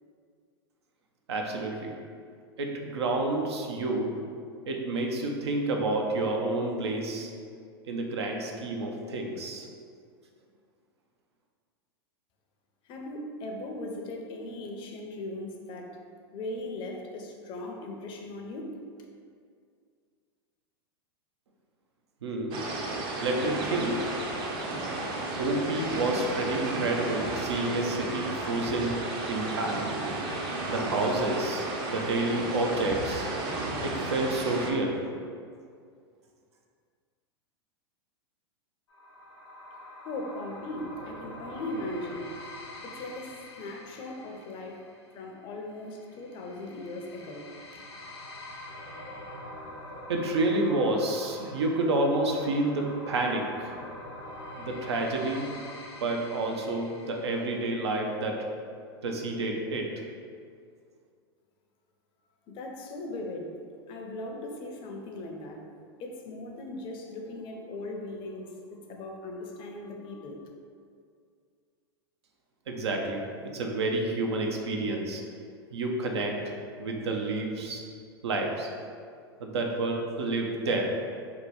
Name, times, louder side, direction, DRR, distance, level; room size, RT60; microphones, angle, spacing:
voice 1, 1.3-2.0 2.6-4.1 4.7-7.3 7.9-9.7 22.2-22.6 23.2-24.1 25.4-29.9 30.7-33.3 33.8-35.0 50.1-53.7 54.6-55.5 56.0-58.4 59.0-59.9 72.7-73.2 73.5-75.2 75.7-76.4 76.8-77.8 78.2-78.7 79.4-80.9, right 2 dB, 80° right, 1 dB, 0.5 m, -29 dB
voice 2, 12.9-16.0 16.3-18.8 40.0-42.3 42.8-44.8 45.1-47.8 62.5-63.5 63.9-65.6 66.0-70.4, left 2 dB, 40° left, 2 dB, 0.5 m, -38 dB
sound 1, 22.5-34.7, right 2 dB, 35° right, 0.5 m, -33 dB
sound 2, 38.9-57.5, left 1 dB, 85° left, 0.7 m, -45 dB
2.8 x 2.2 x 4.0 m, 2.2 s
hypercardioid pair, 110°, 14 cm